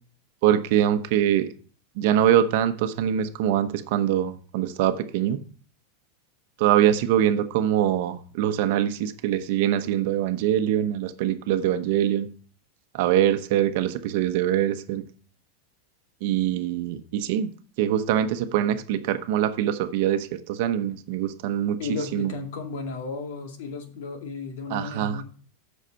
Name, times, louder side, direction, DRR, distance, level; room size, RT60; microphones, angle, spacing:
voice 1, 0.4-1.5 2.0-5.4 6.6-12.3 12.9-15.0 16.2-17.5 17.8-21.8 22.1-22.3 24.7-25.2, right 11 dB, 55° right, 1.0 m, -23 dB
voice 2, 21.8-25.2, left 4 dB, 60° left, 2.2 m, -34 dB
8.1 x 6.5 x 5.7 m
supercardioid pair, 160°, 0 cm